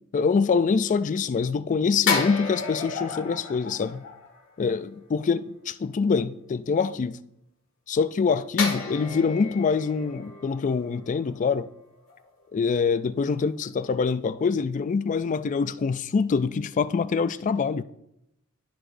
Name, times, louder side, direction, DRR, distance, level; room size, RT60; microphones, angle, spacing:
voice 1, 0.1-4.0 4.6-7.2 7.9-11.7 12.5-17.8, left 5 dB, 35° left, 0.3 m, -25 dB
sound 1, 2.1-4.7 8.6-11.8 12.1-12.3, left 5 dB, 65° left, 1.9 m, -32 dB
14.0 x 4.8 x 2.6 m
head